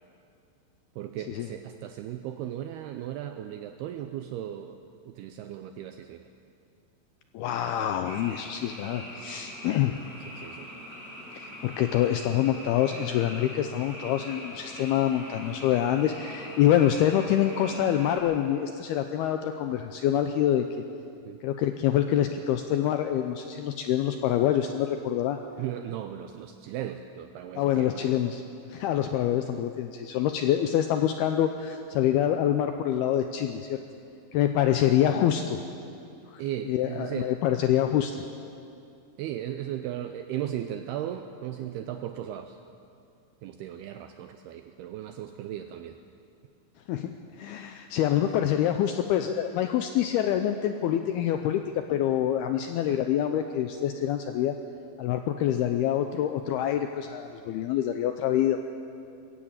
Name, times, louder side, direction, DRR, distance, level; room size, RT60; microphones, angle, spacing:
voice 1, 1.0-4.8 5.1-6.3 9.8-10.0 10.3-10.7 21.3-21.4 25.6-28.2 36.4-37.3 39.2-42.6 43.4-46.0 52.9-53.0, right 11 dB, 90° right, 7 dB, 2.3 m, -36 dB
voice 2, 7.3-9.9 11.3-20.7 21.4-25.4 27.6-28.4 28.7-33.8 34.3-35.6 36.3-38.2 46.9-47.1 47.4-51.6 51.9-54.5 55.0-58.6, left 11 dB, 85° left, 6 dB, 2.3 m, -26 dB
Frog, 8.0-18.2, equal, 10° left, 7.0 m, -42 dB
21.0 x 15.0 x 9.0 m, 2.5 s
omnidirectional pair, 5.3 m